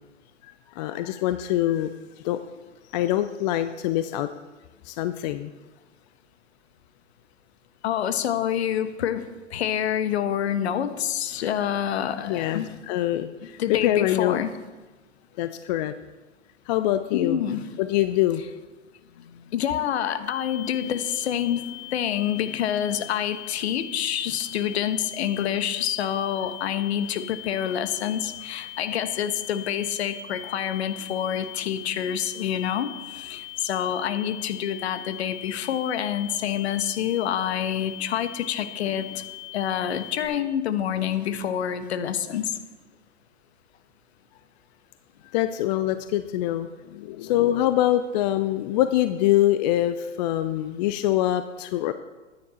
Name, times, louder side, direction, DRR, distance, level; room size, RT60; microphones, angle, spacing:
voice 1, 0.7-1.9 2.2-2.4 2.9-4.3 4.8-5.5 12.3-14.4 15.4-15.9 16.7-17.4 17.8-18.4 45.2-51.9, left 13 dB, 35° left, 11 dB, 0.5 m, -24 dB
voice 2, 7.8-12.8 13.6-14.5 17.1-17.6 19.2-39.3 39.5-42.5, left 9 dB, 60° left, 11 dB, 1.2 m, -27 dB
sound 1, 20.3-40.3, left 16 dB, 5° left, 3.6 m, -40 dB
14.0 x 9.5 x 4.3 m, 1.2 s
figure-of-eight pair, 110°, 37 cm